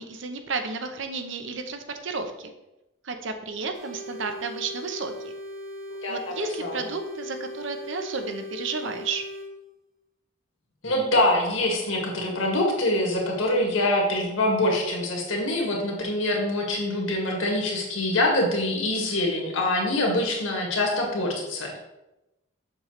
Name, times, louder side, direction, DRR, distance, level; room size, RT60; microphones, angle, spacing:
voice 1, 0.0-2.5 3.0-5.3 6.1-9.2, right 4 dB, 65° right, 7 dB, 0.7 m, -32 dB
sound 1, 3.7-9.5, left 1 dB, 45° right, 1.3 m, -39 dB
voice 2, 6.0-6.8 10.8-21.8, left 1 dB, 75° left, -1 dB, 1.8 m, -25 dB
6.9 x 6.5 x 3.2 m, 0.95 s
head